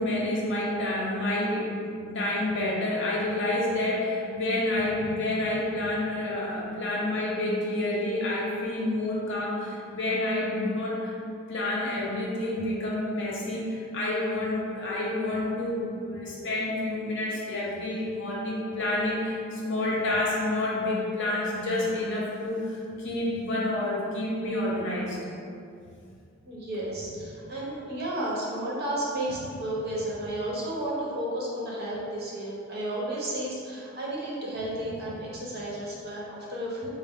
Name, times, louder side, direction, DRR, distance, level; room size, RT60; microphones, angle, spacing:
voice 1, 0.0-11.2 11.5-25.2 27.5-27.8, left 1 dB, 60° left, -5 dB, 0.8 m, -29 dB
voice 2, 26.4-36.9, right 1 dB, 50° right, -6 dB, 0.9 m, -32 dB
5.2 x 2.0 x 3.6 m, 2.5 s
head